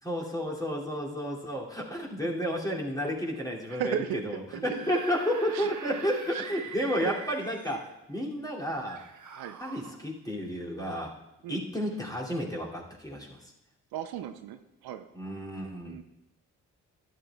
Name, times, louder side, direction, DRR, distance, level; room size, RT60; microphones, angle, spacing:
voice 1, 0.0-9.0 9.6-11.1 11.5-13.5 15.1-16.0, equal, 10° left, -3 dB, 2.7 m, -32 dB
voice 2, 3.7-4.9 5.5-5.7 6.3-6.4 7.0-7.1 7.7-7.8 8.4-8.5 9.4-9.6 11.4-11.6 13.9-15.1 15.9-16.0, right 10 dB, 70° right, 9 dB, 0.6 m, -36 dB
Screaming / Screech, 4.5-7.9 8.8-9.9, right 6 dB, 50° right, 1.3 m, -43 dB
13.5 x 10.5 x 2.4 m, 0.95 s
hypercardioid pair, 45°, 39 cm